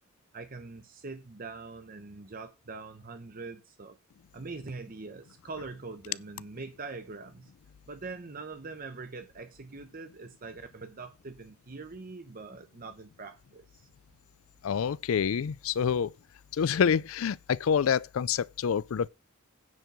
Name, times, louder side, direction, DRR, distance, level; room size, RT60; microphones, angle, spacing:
voice 1, 0.3-4.0 4.3-7.5 7.9-13.9, right 3 dB, 40° right, 0.9 m, -43 dB
voice 2, 14.6-16.1 16.5-19.1, left 7 dB, 70° left, 0.4 m, -27 dB
9.6 x 4.5 x 6.8 m
head